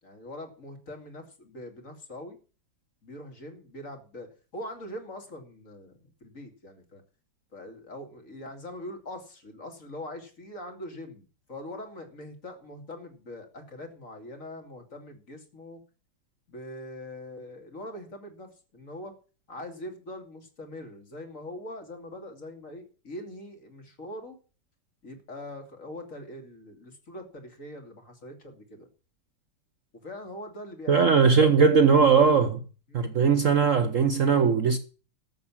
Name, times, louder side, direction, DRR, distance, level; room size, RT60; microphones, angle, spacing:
voice 1, 0.0-2.4 3.0-7.0 7.5-15.8 16.5-19.1 19.5-24.4 25.0-28.9 29.9-31.3 31.5-32.1 32.9-33.1, left 1 dB, 45° left, 3.0 m, -42 dB
voice 2, 30.9-32.6 32.9-34.8, right 5 dB, 55° right, 1.0 m, -20 dB
13.5 x 7.3 x 7.2 m
omnidirectional pair, 2.0 m